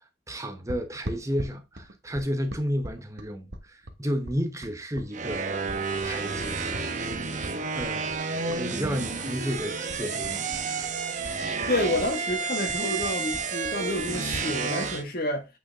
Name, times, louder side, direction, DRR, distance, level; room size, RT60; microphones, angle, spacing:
voice 1, 0.3-5.5 6.0-6.6 7.7-8.1 8.5-10.5, equal, 15° right, 1.0 m, -32 dB
sound 1, 0.7-9.0 9.2-10.9 11.2-14.5, right 1 dB, 60° right, 1.5 m, -41 dB
sound 2, 5.1-15.0, right 4 dB, 40° right, 1.1 m, -31 dB
voice 2, 11.7-15.5, left 1 dB, 50° left, 1.9 m, -29 dB
8.6 x 5.7 x 3.7 m
head